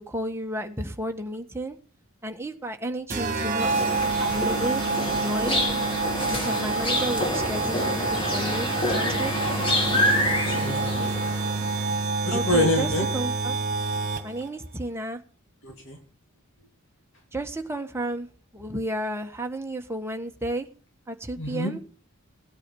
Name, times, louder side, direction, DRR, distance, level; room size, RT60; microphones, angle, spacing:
voice 1, 0.0-1.8 2.2-3.7 4.2-5.6 6.3-9.3 12.3-13.6 14.2-15.2 17.3-18.3 18.5-20.7 21.1-21.8, right 1 dB, 10° right, 4 dB, 1.5 m, -32 dB
sound 1, 3.1-14.5, right 3 dB, 35° right, 2.0 m, -28 dB
sound 2, 3.6-12.0, left 1 dB, 25° left, 2.7 m, -27 dB
voice 2, 10.5-11.2 12.2-13.1 15.6-16.0 21.4-21.7, left 1 dB, 55° left, 2 dB, 2.7 m, -26 dB
18.0 x 9.0 x 7.1 m, 0.40 s
head